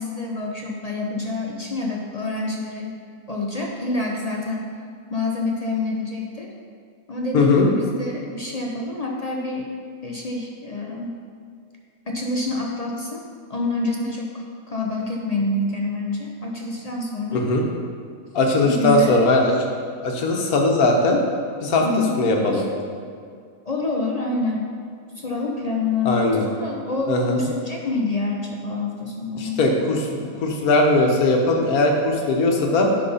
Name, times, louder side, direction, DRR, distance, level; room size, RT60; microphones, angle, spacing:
voice 1, 0.0-2.9 3.3-4.7 5.1-6.5 7.1-9.7 10.0-11.2 12.1-13.2 13.5-17.5 18.6-19.2 21.8-22.1 22.5-22.7 23.7-24.7 25.2-29.6, left 3 dB, 45° left, -1 dB, 0.5 m, -27 dB
voice 2, 7.3-7.7 17.3-17.6 18.3-19.5 20.0-21.2 21.6-21.9 22.2-22.7 26.0-26.4 27.1-27.4 29.3-30.1 30.4-32.9, left 2 dB, 80° left, 1 dB, 1.5 m, -19 dB
10.5 x 4.1 x 5.6 m, 2.2 s
omnidirectional pair, 1.5 m